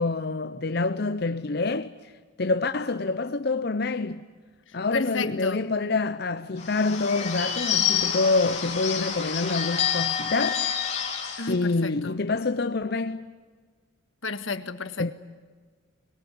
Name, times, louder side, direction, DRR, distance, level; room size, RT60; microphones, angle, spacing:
voice 1, 0.0-1.9 2.4-4.3 4.7-10.7 11.5-13.3 15.0-15.1, left 3 dB, 55° left, 0.7 m, -26 dB
voice 2, 4.7-5.7 11.4-12.1 14.2-15.1, left 4 dB, 90° left, 1.7 m, -33 dB
Bird / Bell, 6.6-11.6, left 8 dB, 35° left, 3.5 m, -28 dB
24.5 x 22.0 x 9.5 m
head